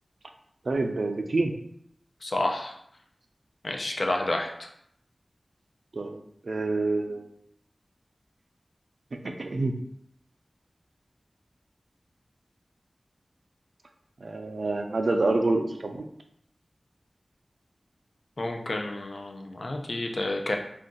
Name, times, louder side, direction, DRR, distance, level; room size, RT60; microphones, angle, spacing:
voice 1, 0.6-1.5 5.9-7.3 9.1-9.7 14.2-16.1, right 2 dB, 75° right, 5 dB, 0.4 m, -27 dB
voice 2, 2.2-2.7 3.6-4.7 18.4-20.6, left 2 dB, 60° left, 2 dB, 0.5 m, -30 dB
2.6 x 2.4 x 3.7 m, 0.71 s
wide cardioid pair, 60°, 0 cm